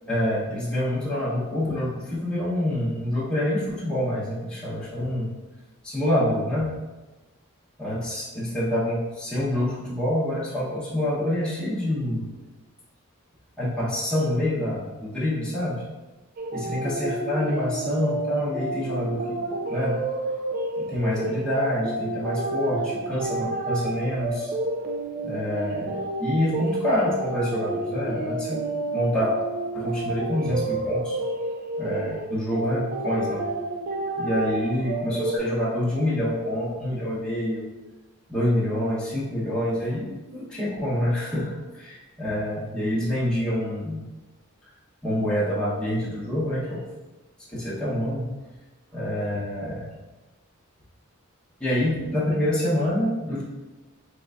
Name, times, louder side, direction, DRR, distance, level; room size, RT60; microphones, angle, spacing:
voice 1, 0.1-5.3 5.8-6.7 7.8-12.3 13.6-15.8 16.5-19.4 19.7-20.0 20.8-24.5 25.2-28.6 28.9-29.3 29.7-31.2 31.8-33.4 34.2-37.7 38.3-44.0 45.0-46.9 47.5-48.3 48.9-49.9 51.6-53.4, left 1 dB, 5° left, -9 dB, 0.9 m, -26 dB
sound 1, 16.4-35.4, right 2 dB, 45° right, 0.4 m, -30 dB
4.5 x 3.3 x 2.4 m, 1.1 s
head